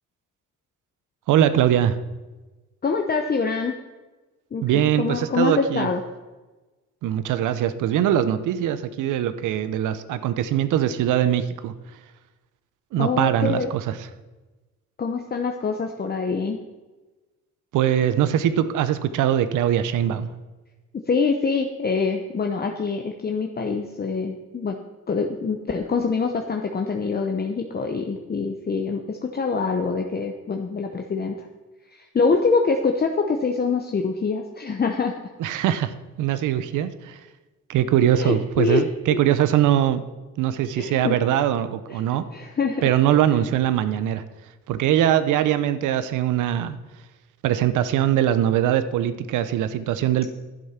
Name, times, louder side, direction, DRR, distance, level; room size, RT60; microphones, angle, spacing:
voice 1, 1.3-2.0 4.6-5.9 7.0-11.7 12.9-13.9 17.7-20.3 35.4-35.9 36.2-37.2 37.7-40.0 40.4-42.2 42.8-44.2 44.7-46.8 47.4-50.3, right 11 dB, 85° right, 13 dB, 0.8 m, -22 dB
voice 2, 2.8-3.8 4.5-6.0 13.0-13.7 15.0-16.6 21.1-24.8 25.1-31.5 32.1-35.1 38.2-38.8 39.1-39.2 40.8-41.2 41.9-42.0 42.3-42.9, left 4 dB, 30° left, 3 dB, 0.9 m, -25 dB
11.0 x 7.9 x 5.8 m, 1.2 s
cardioid pair, 90°, 30 cm